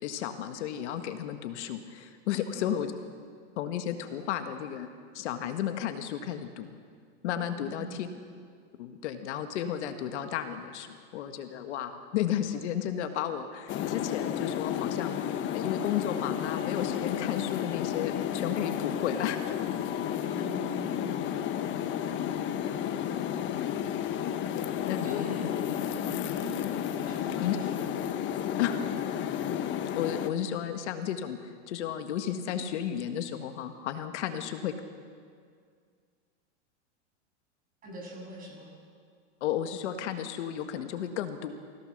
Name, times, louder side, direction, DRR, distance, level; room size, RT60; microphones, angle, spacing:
voice 1, 0.0-2.9 3.6-4.9 5.1-6.7 7.2-8.1 8.8-15.1 15.5-19.6 20.3-20.4 22.1-22.3 24.9-25.5 27.4-27.6 28.6-28.8 29.2-29.6 29.9-34.7 39.4-41.5, left 10 dB, 70° left, 7 dB, 1.7 m, -33 dB
voice 2, 7.5-8.1 20.3-21.3 25.0-25.6 25.9-26.6 27.0-27.8 37.8-38.7, equal, 25° right, -1 dB, 7.8 m, -43 dB
sound 1, 13.7-30.3, left 9 dB, 30° left, 1.2 m, -32 dB
26.5 x 16.5 x 6.6 m, 2.1 s
supercardioid pair, 140°, 36 cm